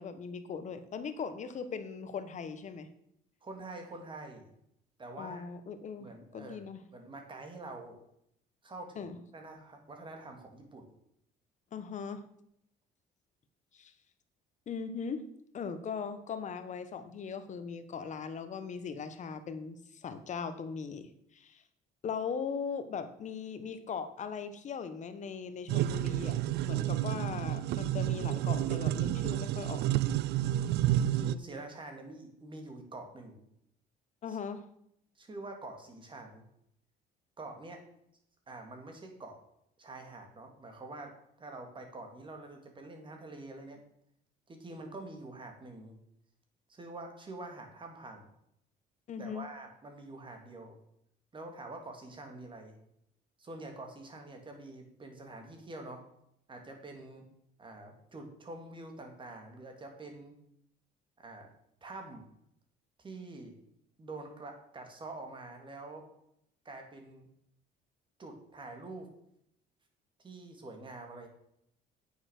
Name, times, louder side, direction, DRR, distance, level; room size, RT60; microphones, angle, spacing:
voice 1, 0.0-2.9 5.2-6.8 8.9-9.2 11.7-12.2 13.7-13.9 14.7-15.2 15.5-21.6 22.0-29.9 34.2-34.7 49.1-49.5, left 6 dB, 45° left, 10 dB, 1.3 m, -39 dB
voice 2, 3.4-4.5 5.0-5.5 6.0-6.7 6.9-8.0 8.6-9.0 9.3-10.9 31.0-33.4 34.3-34.4 35.2-36.4 37.4-37.8 38.5-39.4 39.8-43.8 44.5-46.0 46.7-48.3 49.2-50.8 51.3-52.8 53.4-56.1 56.5-57.3 57.6-60.3 61.2-61.5 61.8-62.2 63.0-63.6 64.0-66.1 66.6-67.3 68.2-69.1 70.2-71.3, right 2 dB, 30° right, 4 dB, 2.7 m, -46 dB
sound 1, 25.7-31.3, right 13 dB, 80° right, 0.5 m, -30 dB
8.8 x 7.1 x 6.6 m, 0.74 s
cardioid pair, 110°, 17 cm